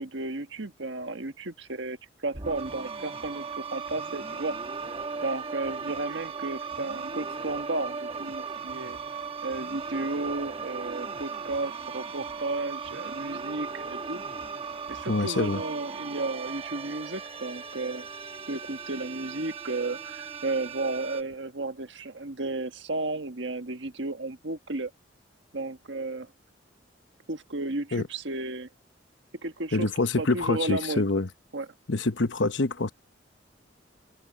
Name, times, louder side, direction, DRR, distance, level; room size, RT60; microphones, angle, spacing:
voice 1, 0.0-2.0 2.2-4.6 5.2-9.0 9.4-14.2 14.9-18.1 18.5-24.9 25.5-26.3 27.3-28.7 29.4-29.9 30.2-31.0 31.5-31.7, right 2 dB, 70° right, 1.5 m, -33 dB
sound 1, 2.3-21.2, right 5 dB, 30° right, 1.2 m, -37 dB
voice 2, 15.1-15.6 27.9-28.0 29.7-31.3 31.9-32.9, left 3 dB, 70° left, 1.0 m, -26 dB
head